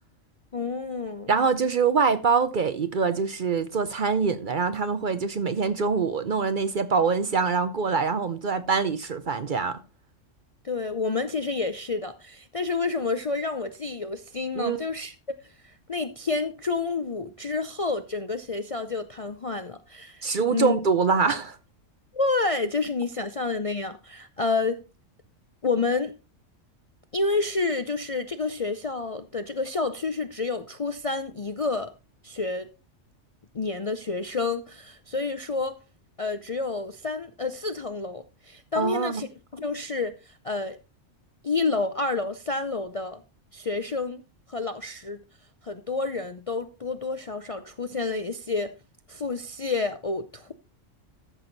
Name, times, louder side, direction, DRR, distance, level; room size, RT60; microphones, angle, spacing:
voice 1, 0.5-1.3 10.6-15.1 15.6-20.2 20.5-20.8 22.1-24.8 25.6-26.2 27.1-31.9 32.2-32.7 33.5-35.8 36.2-39.3 39.5-40.8 41.4-43.2 43.5-44.2 44.5-45.2 45.6-48.7 49.1-50.5, left 3 dB, 40° left, 0.5 m, -29 dB
voice 2, 1.3-9.8 14.6-14.8 20.2-21.6 38.8-39.2, right 5 dB, 50° right, 0.7 m, -24 dB
13.5 x 6.2 x 3.9 m
omnidirectional pair, 1.3 m